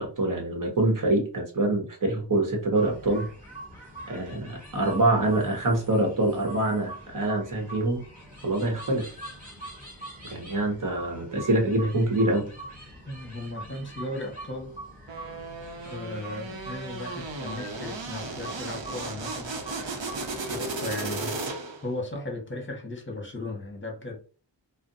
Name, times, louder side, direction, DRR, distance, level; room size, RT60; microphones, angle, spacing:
voice 1, 0.0-3.3 4.1-8.0 8.4-9.1 10.3-12.5, right 2 dB, 45° right, 1.1 m, -25 dB
sound 1, 2.7-20.6, right 1 dB, 20° right, 1.4 m, -44 dB
voice 2, 13.1-14.7 15.8-19.6 20.5-24.2, left 2 dB, 25° left, 1.1 m, -36 dB
sound 2, 15.1-21.9, right 3 dB, 75° right, 0.8 m, -35 dB
2.5 x 2.1 x 4.0 m
wide cardioid pair, 80°, 45 cm